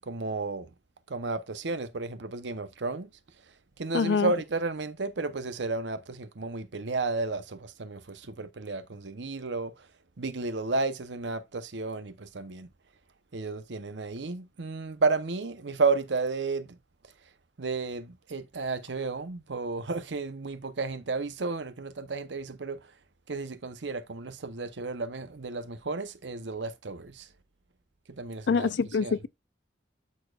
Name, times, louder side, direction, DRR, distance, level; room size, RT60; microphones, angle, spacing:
voice 1, 0.1-0.7 1.1-3.1 3.8-9.7 10.2-12.7 13.3-16.8 17.6-22.8 23.3-27.3 28.1-28.7 29.0-29.2, right 3 dB, 80° right, 0.8 m, -32 dB
voice 2, 3.9-4.3 28.5-29.3, left 5 dB, 75° left, 0.4 m, -25 dB
12.5 x 4.3 x 2.4 m
head